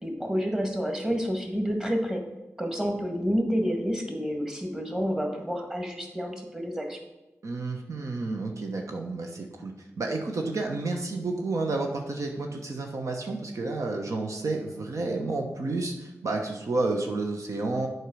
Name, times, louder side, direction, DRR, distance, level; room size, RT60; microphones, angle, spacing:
voice 1, 0.0-2.2 2.6-7.0, equal, 10° right, 3 dB, 1.8 m, -29 dB
voice 2, 7.4-17.9, right 3 dB, 70° right, 2 dB, 1.1 m, -30 dB
8.1 x 4.7 x 6.2 m, 1.0 s
cardioid pair, 50°, 6 cm